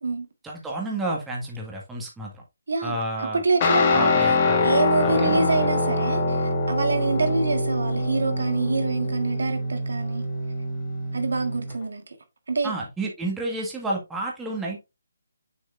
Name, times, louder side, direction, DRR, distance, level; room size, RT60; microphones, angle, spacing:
voice 1, 0.4-2.4 2.8-3.4 3.9-4.7 5.0-5.5 12.6-14.8, right 2 dB, 5° right, 1.8 m, -30 dB
voice 2, 2.7-4.1 4.6-10.2 11.1-12.2 12.5-12.7, right 3 dB, 75° right, 1.6 m, -26 dB
Guitar, 3.6-11.8, left 2 dB, 30° left, 1.8 m, -24 dB
7.0 x 6.2 x 2.6 m
hypercardioid pair, 155°, 0 cm